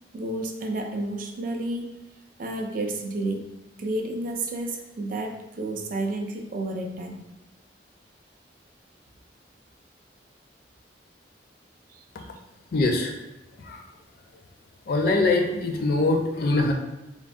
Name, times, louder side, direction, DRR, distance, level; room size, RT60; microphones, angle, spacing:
voice 1, 0.1-2.0 2.4-3.5 3.8-7.2 11.9-12.3, right 2 dB, 50° right, 3 dB, 0.3 m, -31 dB
voice 2, 12.7-13.1 13.6-13.8 14.9-16.7, left 2 dB, 60° left, 2 dB, 0.4 m, -23 dB
3.4 x 2.0 x 2.5 m, 0.96 s
head